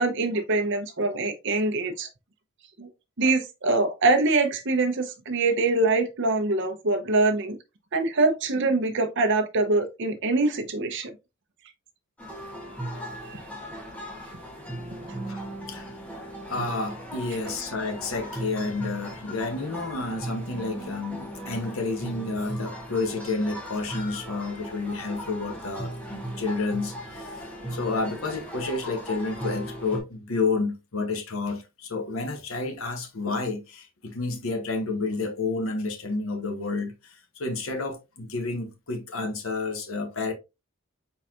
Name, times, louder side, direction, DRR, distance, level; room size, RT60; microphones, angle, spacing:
voice 1, 0.0-2.1 2.8-2.9 3.2-7.6 7.9-11.1 13.3-13.4, right 2 dB, 60° right, 0.8 m, -24 dB
sound 1, 12.2-30.0, right 1 dB, 5° left, 1.1 m, -37 dB
voice 2, 15.3-40.3, left 3 dB, 75° left, 1.1 m, -30 dB
4.4 x 4.0 x 2.5 m
head